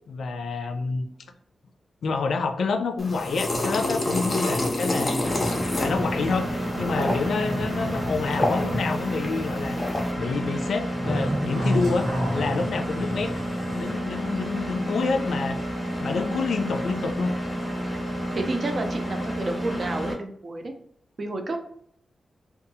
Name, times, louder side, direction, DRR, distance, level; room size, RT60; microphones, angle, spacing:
voice 1, 0.1-1.1 2.0-5.5 5.8-9.8 10.2-13.3 13.7-15.6 16.0-17.3, left 4 dB, 90° left, 7 dB, 0.3 m, -28 dB
sound 1, 3.0-10.1, left 1 dB, 25° left, 0.5 m, -29 dB
Engine, 5.2-20.1, equal, 5° right, 0.7 m, -30 dB
sound 2, 5.3-9.5 9.8-10.2 10.6-13.9, equal, 90° right, 1.2 m, -31 dB
voice 2, 18.4-20.7 21.2-21.6, right 2 dB, 40° right, 5 dB, 0.4 m, -30 dB
2.7 x 2.3 x 2.6 m, 0.66 s
wide cardioid pair, 170°, 0 cm